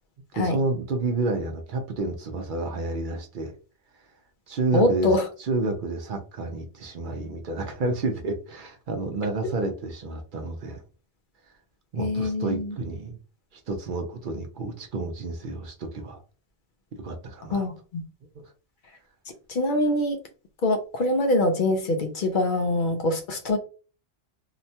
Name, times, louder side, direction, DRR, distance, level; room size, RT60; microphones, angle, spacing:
voice 1, 0.4-3.5 4.0-4.1 4.5-10.8 11.9-13.2 13.5-16.2 16.9-17.7 18.3-18.4, right 3 dB, 60° right, 5 dB, 0.6 m, -30 dB
voice 2, 4.7-5.2 12.0-12.8 17.5-18.0 19.5-20.2 20.6-23.6, left 1 dB, 60° left, 5 dB, 0.6 m, -24 dB
2.8 x 2.2 x 2.7 m, 0.36 s
omnidirectional pair, 1.1 m